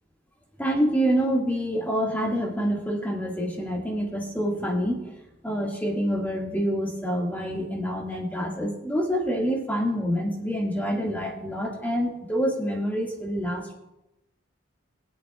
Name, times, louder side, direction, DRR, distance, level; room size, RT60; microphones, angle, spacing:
voice 1, 0.6-5.1 5.4-13.7, equal, 10° left, -1 dB, 1.9 m, -27 dB
21.5 x 8.2 x 2.4 m, 0.95 s
head